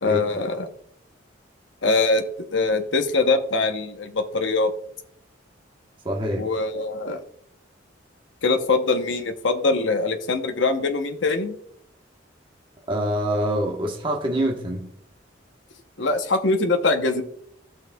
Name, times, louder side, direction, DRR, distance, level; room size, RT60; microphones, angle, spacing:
voice 1, 0.0-0.7 1.8-2.2 2.5-4.7 6.4-7.2 8.4-11.5 16.0-17.2, left 3 dB, 70° left, 0.9 m, -22 dB
voice 2, 6.0-6.5 12.9-14.9, equal, 25° right, 1.1 m, -25 dB
15.0 x 6.3 x 2.3 m
head